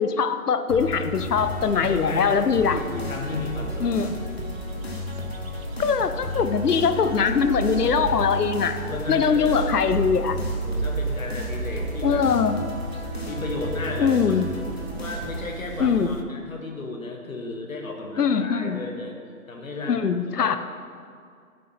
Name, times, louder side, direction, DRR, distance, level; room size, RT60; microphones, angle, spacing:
voice 1, 0.0-2.8 3.8-4.1 5.8-8.8 9.1-10.4 12.0-12.6 14.0-14.5 15.8-16.1 18.2-18.8 19.9-20.6, left 6 dB, 85° left, 10 dB, 0.8 m, -22 dB
sound 1, 0.7-15.5, left 2 dB, 40° left, 0.9 m, -34 dB
sound 2, 1.2-16.2, right 5 dB, 65° right, 0.7 m, -35 dB
voice 2, 1.7-2.4 2.7-4.1 7.6-8.1 8.9-9.7 10.6-12.2 13.3-14.4 15.0-19.2 19.5-20.0 20.4-20.6, left 2 dB, 60° left, 2 dB, 1.4 m, -34 dB
8.4 x 5.3 x 5.8 m, 2.2 s
hypercardioid pair, 180°, 45 cm